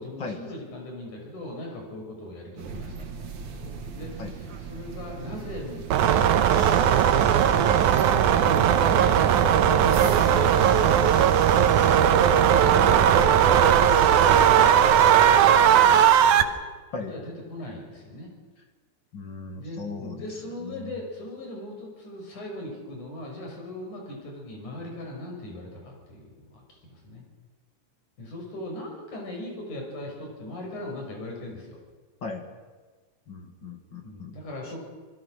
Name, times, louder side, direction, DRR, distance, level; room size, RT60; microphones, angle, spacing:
voice 1, 0.0-7.3 7.9-11.4 12.6-16.5 17.1-18.3 19.6-27.2 28.2-31.8 34.0-34.8, left 1 dB, 75° left, 0 dB, 7.2 m, -39 dB
sound 1, 2.6-15.8, right 5 dB, 65° right, 3.0 m, -38 dB
sound 2, 5.9-16.4, right 9 dB, 85° right, 2.5 m, -18 dB
sound 3, 6.4-8.1 9.9-12.0 13.9-15.5 16.5-16.6, left 1 dB, 55° left, 8.2 m, -47 dB
voice 2, 12.2-12.5 16.9-17.1 19.1-20.2 20.6-20.9 32.2-32.4 33.3-34.3, left 4 dB, 40° left, 5 dB, 2.3 m, -37 dB
26.0 x 20.0 x 6.4 m, 1.3 s
omnidirectional pair, 3.5 m